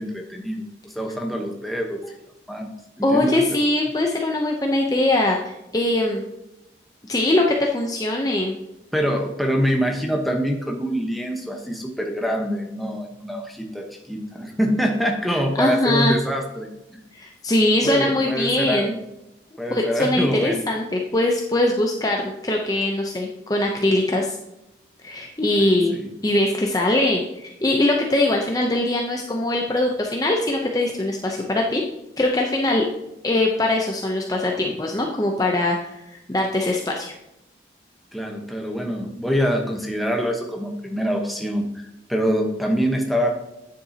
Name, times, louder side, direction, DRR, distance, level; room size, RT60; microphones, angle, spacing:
voice 1, 0.0-2.0 2.5-2.7 3.0-3.4 8.9-17.0 17.8-19.0 19.6-20.6 25.6-26.1 38.1-43.3, equal, ahead, 1 dB, 1.0 m, -25 dB
voice 2, 3.0-6.2 7.1-8.5 15.6-16.2 17.1-18.9 19.7-24.4 25.0-26.0 26.2-31.8 32.2-32.9 33.2-37.1, left 1 dB, 20° left, 0 dB, 0.7 m, -22 dB
9.6 x 7.6 x 2.8 m, 0.90 s
head